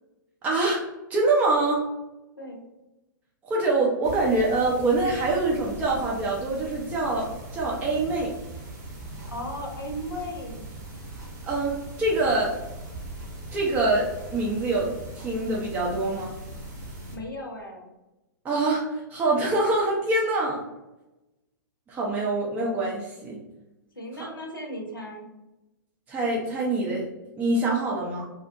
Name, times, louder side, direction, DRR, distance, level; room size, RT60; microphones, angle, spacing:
voice 1, 0.4-0.8 1.1-1.9 3.5-8.3 11.4-12.6 13.5-16.3 18.4-20.6 21.9-23.4 24.2-24.3 26.1-27.1 27.4-28.3, right 2 dB, 15° right, -4 dB, 0.4 m, -25 dB
sound 1, 4.0-17.2, right 2 dB, 55° right, 0.8 m, -40 dB
voice 2, 9.3-10.7 17.1-17.9 24.0-25.3, equal, 80° left, 1 dB, 0.7 m, -36 dB
2.6 x 2.1 x 2.4 m, 0.98 s
figure-of-eight pair, 110°, 11 cm